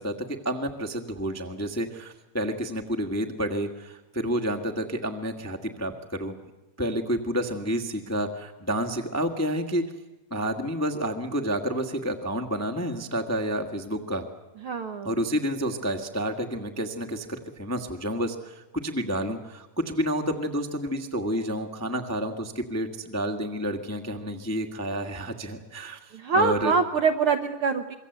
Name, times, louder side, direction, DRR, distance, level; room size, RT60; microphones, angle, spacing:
voice 1, 0.0-6.3 6.8-9.8 10.3-14.2 15.0-26.7, equal, 10° left, 4 dB, 0.9 m, -29 dB
voice 2, 14.6-15.1 26.1-28.0, right 4 dB, 60° right, 6 dB, 1.5 m, -24 dB
26.0 x 23.5 x 8.2 m, 1.0 s
omnidirectional pair, 3.6 m